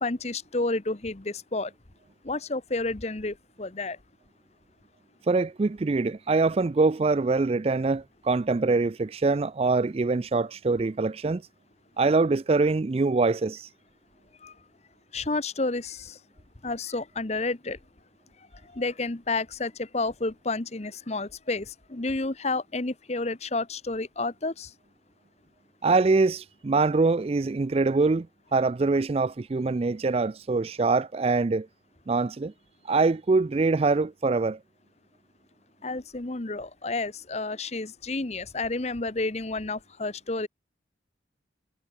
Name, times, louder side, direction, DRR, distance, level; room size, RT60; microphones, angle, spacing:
voice 1, 0.0-1.7 2.2-4.0 14.4-14.5 15.1-16.2 16.6-17.8 18.6-24.7 35.8-40.5, left 3 dB, 35° left, 1.0 m, -30 dB
voice 2, 5.3-11.4 12.0-13.7 25.8-28.3 28.5-31.7 32.1-32.5 32.9-34.6, right 3 dB, 30° right, 0.4 m, -24 dB
head